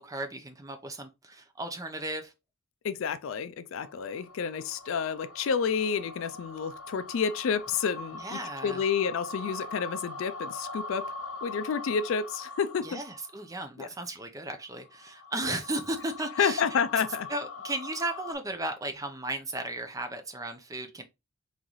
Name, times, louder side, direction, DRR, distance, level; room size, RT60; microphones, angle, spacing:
voice 1, 0.0-2.3 8.1-8.8 12.8-16.6 17.3-21.0, right 2 dB, 15° right, 0.6 m, -35 dB
voice 2, 2.8-11.1 11.4-13.0 13.8-13.9 15.4-15.6 16.4-17.3, left 6 dB, 60° left, 0.3 m, -30 dB
sound 1, 3.8-13.5 14.7-18.3, left 3 dB, 85° left, 1.4 m, -42 dB
3.7 x 3.1 x 3.9 m
head